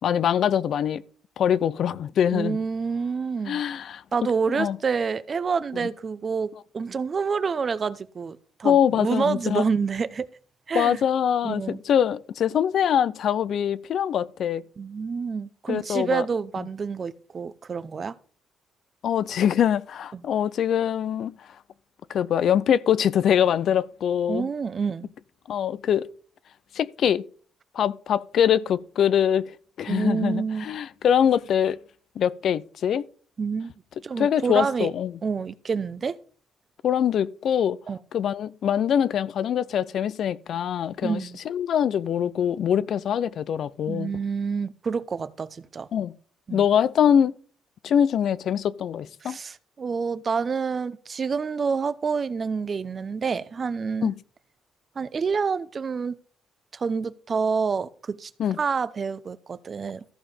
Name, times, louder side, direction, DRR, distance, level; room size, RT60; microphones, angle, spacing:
voice 1, 0.0-1.0 1.4-2.6 3.5-4.0 4.5-4.8 8.6-9.6 10.7-14.6 15.7-16.2 19.0-21.3 22.1-24.5 25.5-26.1 26.7-27.2 27.7-29.4 29.8-31.8 32.2-33.1 34.2-35.1 36.8-37.8 38.1-41.2 41.5-44.1 45.9-46.1 46.5-47.3 47.8-49.4 54.0-54.1 58.4-58.6, left 9 dB, 65° left, 0.5 m, -23 dB
voice 2, 2.3-3.6 4.1-10.3 10.7-11.0 11.4-11.8 14.8-18.1 20.1-20.2 24.3-25.1 29.9-30.7 33.4-33.7 34.0-34.9 35.2-36.2 37.9-38.0 41.0-41.4 43.9-45.9 46.5-46.6 49.2-54.1 55.0-56.2 56.7-58.3 58.6-60.0, right 5 dB, 40° right, 0.8 m, -28 dB
14.0 x 5.1 x 5.6 m
cardioid pair, 90°, 0 cm